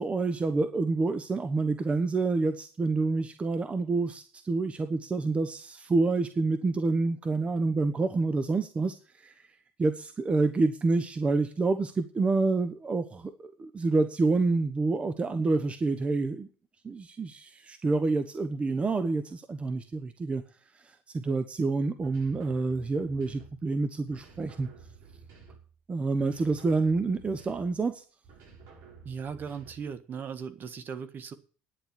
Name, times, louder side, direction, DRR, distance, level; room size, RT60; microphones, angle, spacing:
voice 1, 0.0-8.9 9.2-9.3 9.8-16.5 16.8-20.4 21.1-24.7 25.9-28.0, right 3 dB, 25° right, 1.1 m, -28 dB
sound 1, 22.0-23.7 24.1-25.8 26.2-27.9 28.2-30.0, right 5 dB, 65° right, 6.3 m, -52 dB
voice 2, 29.0-31.3, right 6 dB, 45° right, 1.6 m, -38 dB
10.0 x 7.3 x 9.4 m
supercardioid pair, 90°, 5 cm